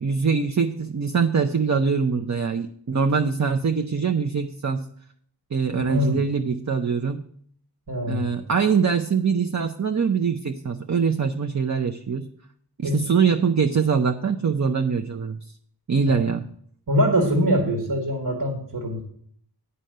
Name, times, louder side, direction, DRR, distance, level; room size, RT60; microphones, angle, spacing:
voice 1, 0.0-4.9 5.5-7.2 8.1-12.2 12.8-15.4 15.9-16.5, right 5 dB, 45° right, 5 dB, 0.6 m, -23 dB
voice 2, 5.7-6.2 7.9-8.3 12.8-13.1 16.1-16.3 16.9-19.0, equal, 70° right, 2 dB, 1.9 m, -23 dB
8.9 x 5.5 x 7.8 m, 0.62 s
wide cardioid pair, 60°, 39 cm